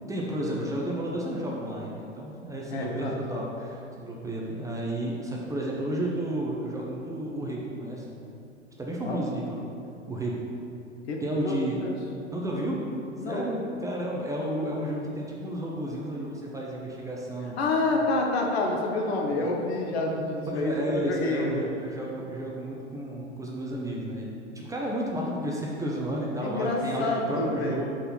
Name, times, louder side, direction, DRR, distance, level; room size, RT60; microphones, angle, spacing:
voice 1, 0.1-8.2 8.8-9.7 10.1-10.4 11.2-11.8 12.3-12.8 13.3-17.6 19.3-19.5 20.5-27.9, right 1 dB, 10° right, -3 dB, 0.8 m, -32 dB
voice 2, 2.7-3.1 9.0-9.2 11.1-11.9 13.2-13.5 17.6-21.6 26.4-27.8, left 2 dB, 60° left, 0 dB, 1.2 m, -28 dB
5.4 x 4.2 x 5.5 m, 2.7 s
figure-of-eight pair, 95°, 36 cm